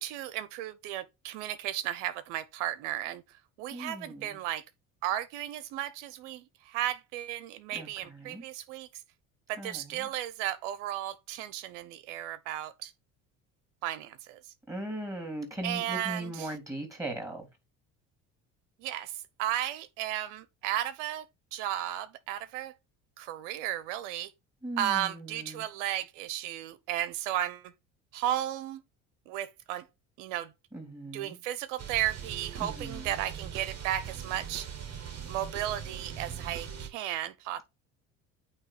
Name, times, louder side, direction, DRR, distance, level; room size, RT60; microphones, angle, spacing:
voice 1, 0.0-3.2 3.6-4.6 5.0-9.0 9.5-12.9 13.8-14.5 15.6-16.5 18.8-22.7 23.2-24.3 24.8-27.7 28.1-28.8 29.3-29.9 30.2-30.5 31.1-34.7 35.3-37.6, right 12 dB, 85° right, 0.9 m, -34 dB
voice 2, 3.7-4.4 7.7-8.4 9.6-10.1 14.7-17.5 24.6-25.7 30.7-31.4 32.6-33.2, right 1 dB, 10° right, 3.0 m, -39 dB
sound 1, 31.8-36.9, right 8 dB, 45° right, 2.1 m, -41 dB
8.9 x 3.1 x 4.3 m
supercardioid pair, 80°, 36 cm